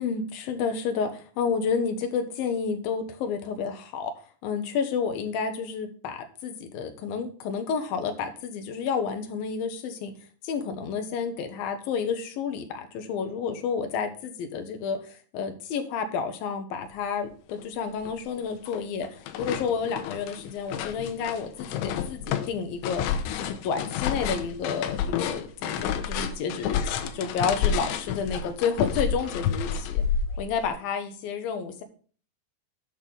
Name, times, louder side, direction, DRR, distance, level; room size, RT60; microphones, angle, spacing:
voice 1, 0.0-4.1 4.4-10.1 10.4-23.0 23.4-30.0 30.4-31.8, left 6 dB, 75° left, 6 dB, 2.2 m, -30 dB
sound 1, 17.6-17.7 18.0-18.8 19.0-30.7, left 7 dB, 90° left, 3.2 m, -30 dB
8.7 x 6.2 x 5.3 m, 0.41 s
omnidirectional pair, 5.3 m